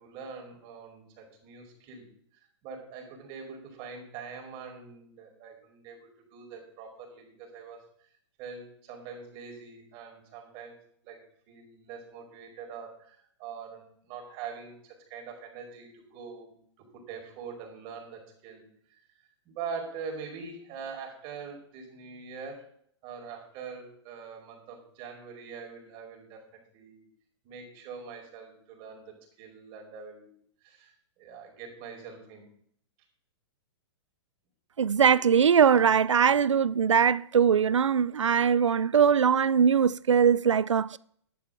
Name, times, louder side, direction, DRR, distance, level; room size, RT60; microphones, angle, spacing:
voice 1, 0.0-2.1 2.3-7.8 8.4-10.8 11.0-11.2 11.5-19.0 19.4-22.7 23.0-27.1 27.4-30.3 30.6-32.5, right 5 dB, 40° right, 4.8 m, -43 dB
voice 2, 34.8-41.0, right 7 dB, 90° right, 0.4 m, -21 dB
14.0 x 11.0 x 3.8 m
hypercardioid pair, 115°, 15 cm